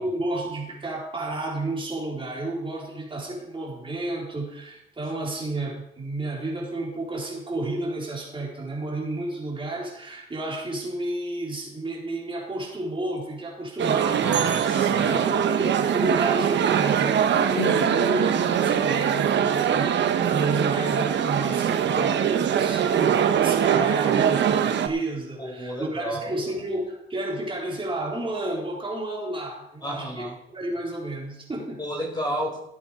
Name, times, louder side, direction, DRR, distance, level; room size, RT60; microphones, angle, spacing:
voice 1, 0.0-14.6 14.9-30.3 30.5-31.8, right 2 dB, 25° right, -3 dB, 4.2 m, -31 dB
sound 1, 13.8-24.9, right 8 dB, 65° right, 1.1 m, -22 dB
voice 2, 14.2-15.3 25.4-26.3 29.8-30.4 31.8-32.6, equal, 20° left, 0 dB, 4.7 m, -32 dB
sound 2, 17.6-22.6, left 7 dB, 65° left, 1.1 m, -40 dB
16.0 x 8.3 x 5.1 m, 0.81 s
cardioid pair, 90°, 20 cm